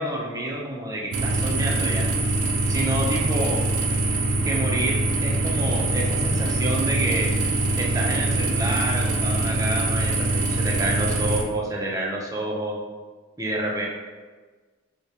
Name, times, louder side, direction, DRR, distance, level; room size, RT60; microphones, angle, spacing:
voice 1, 0.0-2.1 2.7-3.6 4.4-7.3 7.8-12.8 13.4-13.9, right 1 dB, 15° right, -2 dB, 0.4 m, -28 dB
sound 1, 1.1-11.4, right 2 dB, 70° right, 0.5 m, -23 dB
4.5 x 2.1 x 2.7 m, 1.4 s
head